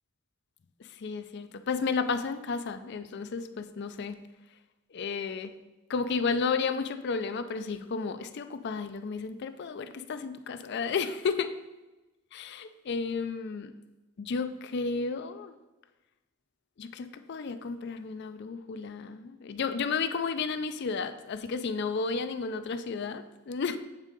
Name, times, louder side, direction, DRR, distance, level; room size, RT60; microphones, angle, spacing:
voice 1, 1.0-4.2 4.9-5.5 5.9-11.5 12.3-13.7 14.2-15.5 16.8-23.8, left 5 dB, 55° left, 10 dB, 0.4 m, -32 dB
8.2 x 3.7 x 5.1 m, 1.1 s
head